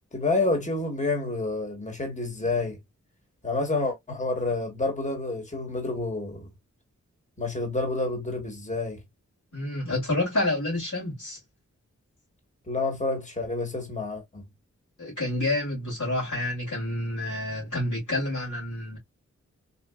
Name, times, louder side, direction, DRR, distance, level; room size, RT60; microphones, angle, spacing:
voice 1, 0.1-2.8 3.4-6.5 7.4-9.0 12.7-14.4, left 2 dB, 25° left, 1.4 m, -28 dB
voice 2, 9.5-11.4 15.0-19.0, left 1 dB, 85° left, 2.6 m, -28 dB
4.0 x 2.4 x 2.3 m
wide cardioid pair, 50°, 30 cm